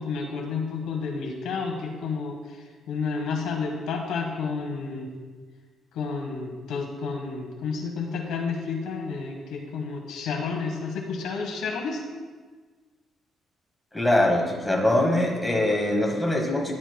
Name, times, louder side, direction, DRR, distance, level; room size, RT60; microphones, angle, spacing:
voice 1, 0.0-5.1 5.9-12.0, left 4 dB, 85° left, 2 dB, 1.5 m, -31 dB
voice 2, 13.9-16.7, left 1 dB, 5° left, -1 dB, 1.8 m, -23 dB
11.0 x 10.0 x 2.3 m, 1.4 s
cardioid pair, 90°, 0 cm